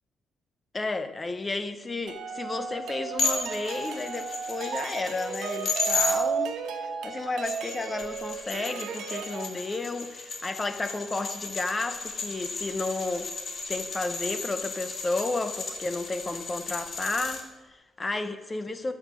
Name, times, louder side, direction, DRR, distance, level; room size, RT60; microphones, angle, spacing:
voice 1, 0.7-13.3 13.7-18.9, left 3 dB, 20° left, 0.9 m, -32 dB
sound 1, 2.1-9.5, right 6 dB, 85° right, 1.4 m, -34 dB
sound 2, 3.2-6.1 7.2-17.4, left 4 dB, 45° left, 1.9 m, -34 dB
14.5 x 5.9 x 7.6 m
cardioid pair, 155°, 0 cm